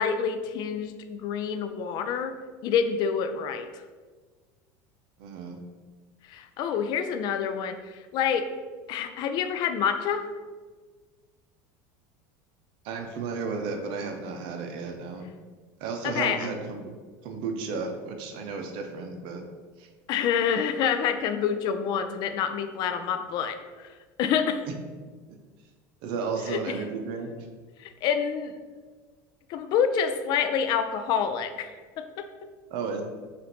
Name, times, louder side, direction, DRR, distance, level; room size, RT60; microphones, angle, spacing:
voice 1, 0.0-2.3 2.6-3.8 6.3-8.5 8.9-10.3 16.0-16.5 20.1-23.9 24.2-24.6 26.5-26.8 27.8-28.5 29.5-31.7 32.0-32.3, left 7 dB, 55° left, 8 dB, 0.4 m, -27 dB
voice 2, 5.2-5.6 12.8-15.2 15.8-16.9 17.2-19.4 19.8-19.9 26.0-27.3 32.7-33.0, right 4 dB, 65° right, 4 dB, 0.6 m, -33 dB
5.0 x 2.5 x 3.0 m, 1.4 s
supercardioid pair, 110°, 9 cm